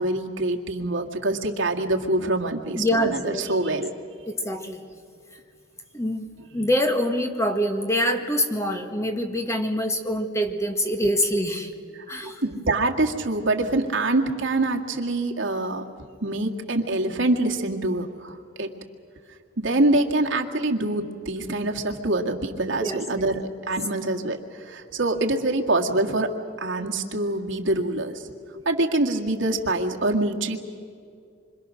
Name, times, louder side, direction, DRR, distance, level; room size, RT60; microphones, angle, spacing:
voice 1, 0.0-3.9 12.0-15.8 16.2-18.7 19.6-30.6, right 2 dB, 70° right, 1 dB, 1.9 m, -25 dB
voice 2, 2.7-3.8 4.3-4.8 5.9-6.3 6.5-11.7 12.1-12.4 22.8-23.3, equal, 15° left, 4 dB, 1.8 m, -25 dB
26.0 x 26.0 x 6.4 m, 2.3 s
head